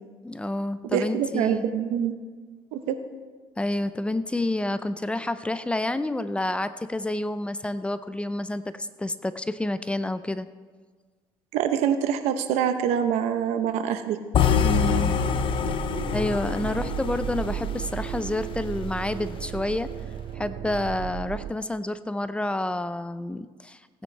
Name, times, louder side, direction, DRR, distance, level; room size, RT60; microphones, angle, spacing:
voice 1, 0.2-1.7 3.6-10.5 14.6-15.2 15.7-15.8 16.1-19.9 20.3-24.0, left 1 dB, 10° left, 13 dB, 0.5 m, -29 dB
voice 2, 0.9-2.1 2.7-3.0 11.5-14.2, right 9 dB, 85° right, 9 dB, 0.9 m, -25 dB
sound 1, 14.3-18.5, left 7 dB, 50° left, 0.7 m, -25 dB
sound 2, 14.6-21.5, right 10 dB, 65° right, 0.5 m, -34 dB
17.0 x 9.5 x 3.3 m, 1.5 s
cardioid pair, 100°, 11 cm